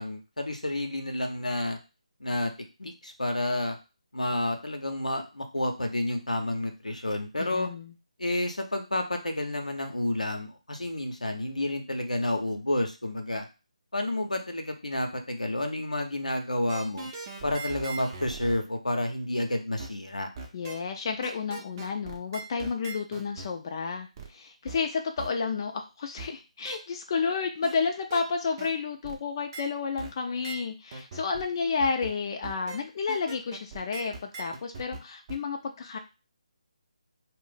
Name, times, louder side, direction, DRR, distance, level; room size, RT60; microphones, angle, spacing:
voice 1, 0.0-1.8 2.2-3.8 4.1-7.7 8.2-13.5 13.9-17.1 17.4-20.3, left 1 dB, 90° left, 4 dB, 0.7 m, -30 dB
voice 2, 7.4-7.9 20.5-36.0, left 5 dB, 35° left, 3 dB, 0.4 m, -31 dB
sound 1, 16.7-18.6 19.8-19.9 20.4-20.8 21.2-23.5 24.2-24.3 24.7-24.8 25.2-25.3 26.2-26.3 26.7-26.8 27.6-27.7 28.1-28.2 28.6-28.7 29.0-29.2 29.5-29.6 30.0-30.1 30.4-30.6 30.9-31.5 31.8-32.1 32.4-32.8 33.1-35.0 35.3-35.4, right 3 dB, 30° right, 0.6 m, -40 dB
2.5 x 2.0 x 3.9 m, 0.29 s
figure-of-eight pair, 150°, 4 cm